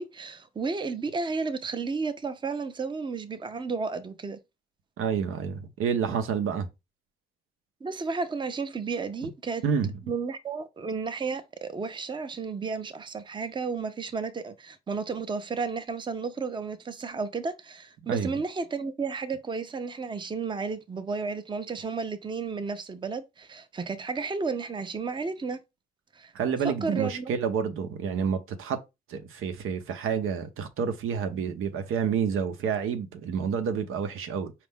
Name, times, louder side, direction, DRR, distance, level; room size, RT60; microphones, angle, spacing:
voice 1, 0.0-4.4 7.8-9.6 10.1-25.6 26.1-26.3 26.6-27.3, right 4 dB, 20° right, 0.6 m, -32 dB
voice 2, 5.0-6.7 9.6-9.9 18.1-18.3 26.3-28.8 29.1-34.5, right 7 dB, 80° right, 0.7 m, -29 dB
4.4 x 2.4 x 3.6 m
cardioid pair, 85°, 21 cm